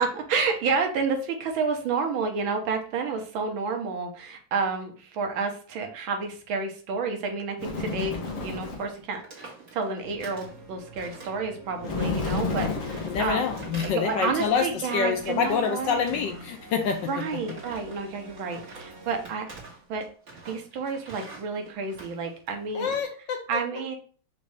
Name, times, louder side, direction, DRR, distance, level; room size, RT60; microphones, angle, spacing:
voice 1, 0.0-13.4 13.8-16.4 17.1-19.5 19.9-20.1 20.4-22.9 23.5-24.0, right 5 dB, 75° right, 4 dB, 1.6 m, -30 dB
Bird, 7.6-9.0 11.8-14.3, left 4 dB, 45° left, 1.2 m, -31 dB
sound 1, 8.2-8.5 8.7-8.9 9.1-10.6 11.0-11.5 11.8-14.8 15.1-16.4 16.8-23.0, right 3 dB, 40° right, 1.9 m, -47 dB
sound 2, 10.0-19.3, right 3 dB, 10° right, 1.1 m, -48 dB
voice 2, 13.0-17.2 22.7-23.6, left 6 dB, 75° left, 5 dB, 1.1 m, -27 dB
5.1 x 2.7 x 3.3 m, 0.41 s
omnidirectional pair, 2.3 m